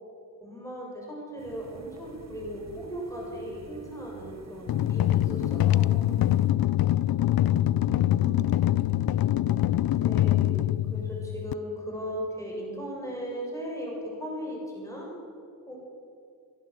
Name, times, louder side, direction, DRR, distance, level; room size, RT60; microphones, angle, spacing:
voice 1, 0.4-5.9 10.0-10.6 10.9-15.1 15.7-15.8, equal, 10° left, -3 dB, 7.3 m, -37 dB
sound 1, 1.4-6.5, right 5 dB, 45° right, 1.3 m, -48 dB
sound 2, 4.7-11.5, left 13 dB, 70° left, 0.5 m, -24 dB
voice 2, 6.5-7.1 7.5-9.8, right 2 dB, 25° right, 2 dB, 1.7 m, -49 dB
22.5 x 17.0 x 8.0 m, 2.5 s
wide cardioid pair, 155°, 38 cm